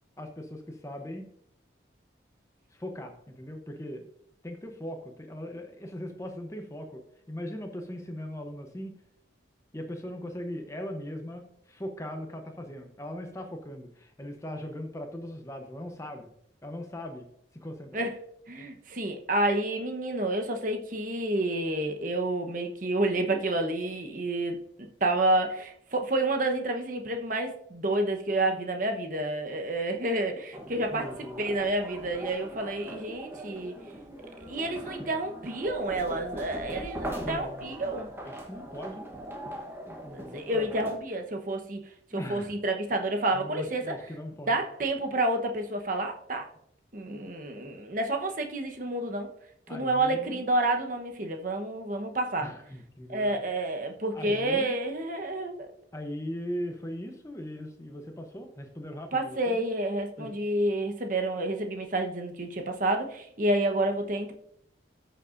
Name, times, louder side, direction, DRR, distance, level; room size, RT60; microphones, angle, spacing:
voice 1, 0.2-1.3 2.7-4.0 4.4-9.0 9.7-16.3 16.6-17.3 17.5-18.1 30.9-31.4 37.0-39.1 39.9-40.7 42.1-42.5 43.3-44.6 49.7-50.5 52.4-53.4 54.1-54.7 55.9-59.6 60.2-60.4, equal, 15° left, 4 dB, 0.7 m, -39 dB
voice 2, 18.5-31.0 31.4-33.7 34.5-38.1 40.1-41.8 42.3-44.0 44.5-46.4 46.9-49.3 49.7-52.5 53.1-55.7 59.1-64.3, right 2 dB, 45° right, 4 dB, 1.0 m, -29 dB
sound 1, 30.5-41.0, right 1 dB, 10° right, 1.0 m, -40 dB
14.0 x 6.7 x 2.5 m, 0.70 s
head